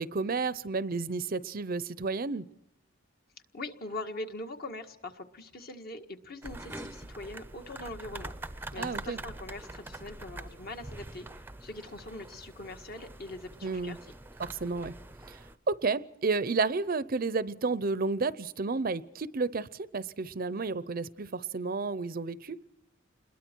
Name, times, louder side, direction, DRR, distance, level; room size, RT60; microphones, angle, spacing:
voice 1, 0.0-2.5 8.8-9.2 13.6-14.0 14.4-14.9 15.3-15.4 15.7-22.6, right 4 dB, 45° right, 16 dB, 0.6 m, -31 dB
voice 2, 3.5-8.3 8.7-11.3 11.6-14.1, left 2 dB, 50° left, 5 dB, 1.8 m, -42 dB
sound 1, 6.4-15.6, right 2 dB, 10° right, 0.7 m, -44 dB
28.0 x 21.5 x 4.6 m, 0.86 s
head